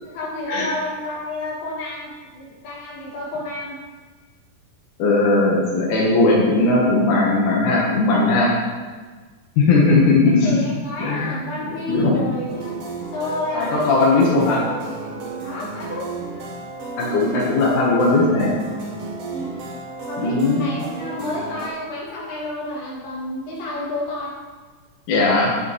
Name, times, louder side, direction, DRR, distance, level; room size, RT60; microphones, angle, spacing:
voice 1, 0.0-3.8 9.8-12.7 13.1-14.3 15.4-16.1 19.3-19.6 20.1-24.4, left 1 dB, 85° left, -6 dB, 4.2 m, -30 dB
voice 2, 5.0-8.5 9.6-10.6 11.0-11.3 11.9-12.2 13.5-14.7 17.0-18.6 20.2-20.6 25.1-25.5, left 3 dB, 70° left, -4 dB, 2.8 m, -18 dB
sound 1, 12.5-21.7, right 3 dB, 90° right, 3.3 m, -33 dB
10.0 x 9.4 x 3.2 m, 1.4 s
omnidirectional pair, 3.9 m